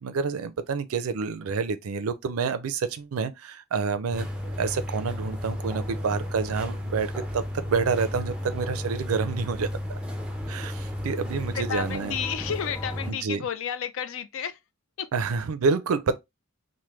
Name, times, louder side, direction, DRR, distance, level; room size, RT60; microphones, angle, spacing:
voice 1, 0.0-4.3 4.6-10.0 10.5-12.1 13.1-13.4 15.1-16.2, right 5 dB, 80° right, 0.4 m, -28 dB
sound 1, 4.1-13.1, left 1 dB, 5° right, 0.4 m, -33 dB
voice 2, 11.5-14.6 15.0-15.1, left 8 dB, 65° left, 0.4 m, -32 dB
3.3 x 2.1 x 3.0 m
head